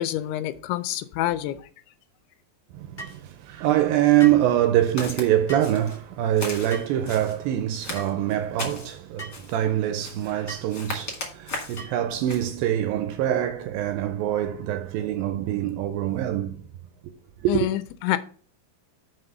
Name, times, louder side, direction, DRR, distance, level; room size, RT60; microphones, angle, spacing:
voice 1, 0.0-1.6 17.5-18.2, left 14 dB, 85° left, 2.6 m, -27 dB
voice 2, 2.7-16.6 17.4-17.7, right 12 dB, 80° right, 2.1 m, -24 dB
sound 1, 3.0-3.2 4.2-4.5 5.5-5.7 6.7-7.0 7.9-8.1 9.2-9.4 10.5-10.7 11.8-12.1, right 1 dB, 60° left, 0.6 m, -39 dB
Walk footsteps, 5.0-5.3 5.6-6.0 6.4-7.4 7.8-8.9 9.3-9.6 10.0-10.4 10.7-11.8 12.3-12.5, left 3 dB, 35° left, 1.9 m, -36 dB
5.8 x 5.3 x 6.7 m
omnidirectional pair, 4.6 m